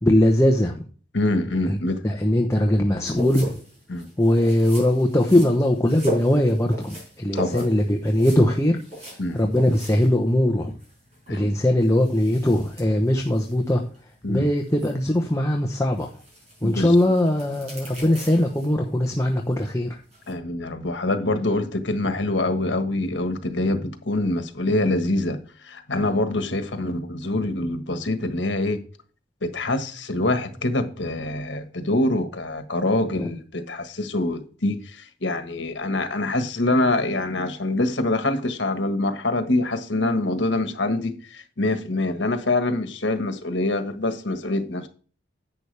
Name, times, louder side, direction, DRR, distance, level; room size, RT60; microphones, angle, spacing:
voice 1, 0.0-0.8 1.7-1.8 2.0-3.5 4.2-8.8 9.3-10.7 11.3-13.8 14.3-16.1 16.6-20.0 33.2-33.3, left 1 dB, 15° left, 0.9 m, -20 dB
voice 2, 1.1-2.0 3.9-4.1 7.3-7.7 9.2-9.4 11.3-11.5 14.2-14.4 16.6-16.9 20.3-28.8 29.4-44.9, left 2 dB, 75° left, 1.5 m, -25 dB
sound 1, 3.1-20.3, right 1 dB, 35° right, 5.2 m, -39 dB
11.0 x 8.6 x 3.4 m
head